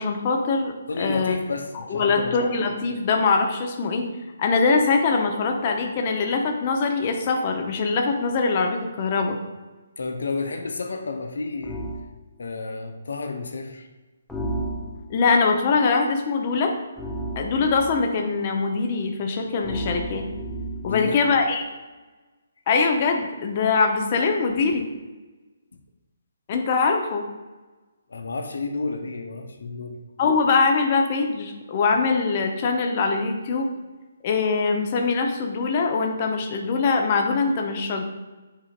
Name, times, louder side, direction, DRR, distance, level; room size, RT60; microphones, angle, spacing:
voice 1, 0.0-0.7 1.0-1.4 1.9-4.1 4.4-9.4 15.1-16.7 17.4-20.3 20.8-21.6 22.7-24.9 26.5-27.3 30.2-33.7 34.2-38.0, left 4 dB, 35° left, 3 dB, 0.8 m, -22 dB
voice 2, 0.9-2.4 10.0-11.9 12.4-13.9 20.8-21.2 28.1-30.0, left 3 dB, 60° left, 5 dB, 0.8 m, -31 dB
sound 1, 11.6-12.1 14.3-15.2 17.0-18.1 19.6-21.0, right 1 dB, 5° left, 0.7 m, -32 dB
8.4 x 5.3 x 2.5 m, 1.2 s
figure-of-eight pair, 135°, 0 cm